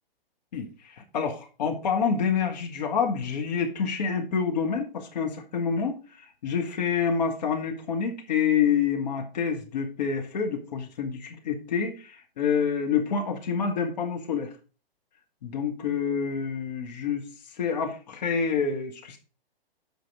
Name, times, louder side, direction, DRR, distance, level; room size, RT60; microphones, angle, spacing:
voice 1, 0.5-14.5 15.4-17.3 17.6-19.2, left 6 dB, 45° left, 3 dB, 1.6 m, -27 dB
7.9 x 5.1 x 4.6 m, 0.35 s
figure-of-eight pair, 120°, 30 cm